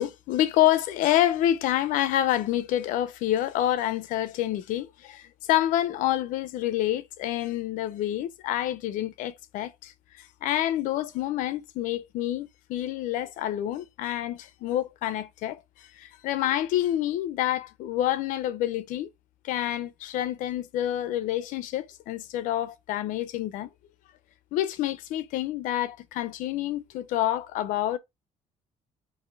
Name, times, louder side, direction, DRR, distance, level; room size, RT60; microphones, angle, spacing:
voice 1, 0.0-9.9 10.2-19.1 19.4-23.7 24.5-28.0, left 13 dB, 85° left, 0.6 m, -28 dB
4.2 x 3.0 x 3.3 m
cardioid pair, 110°, 13 cm